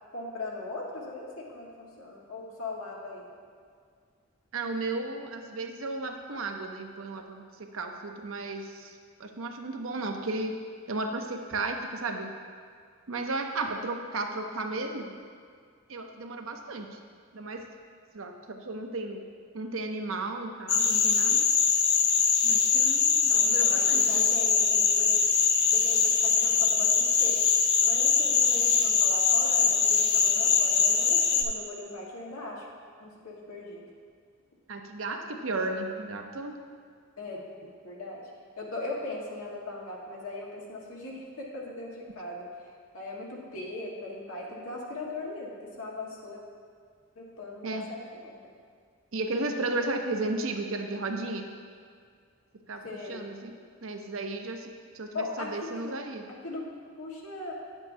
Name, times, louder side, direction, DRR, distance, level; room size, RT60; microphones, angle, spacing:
voice 1, 0.1-3.3 23.3-25.2 25.7-27.3 27.8-32.6 33.0-33.9 37.2-37.4 37.8-38.3 38.6-42.5 42.9-46.4 47.1-48.4 52.8-53.3 55.1-55.9 56.3-56.6 57.0-57.5, left 2 dB, 85° left, -3 dB, 1.5 m, -39 dB
voice 2, 4.5-10.6 10.9-12.3 13.1-15.1 15.9-17.0 17.3-17.6 18.1-19.2 19.5-21.5 22.4-24.3 34.7-36.6 47.6-47.9 49.1-51.5 52.7-52.8 53.1-53.6 53.8-56.2, right 2 dB, 70° right, 4 dB, 0.7 m, -34 dB
sound 1, 20.7-31.4, left 6 dB, 50° left, 0.6 m, -23 dB
9.4 x 8.0 x 2.7 m, 2.1 s
head